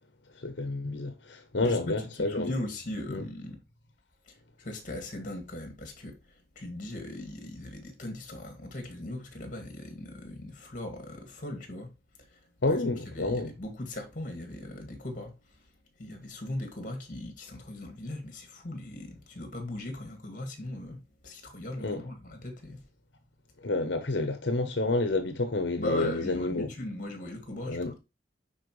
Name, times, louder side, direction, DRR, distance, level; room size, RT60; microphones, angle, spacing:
voice 1, 0.3-2.5 3.1-3.2 12.6-13.5 21.8-22.0 23.6-26.7 27.7-27.9, left 2 dB, 80° left, 0.9 m, -29 dB
voice 2, 1.6-3.6 4.2-11.9 12.2-15.6 16.0-22.8 25.8-28.0, left 1 dB, 45° left, 2.2 m, -39 dB
9.9 x 4.4 x 3.2 m
head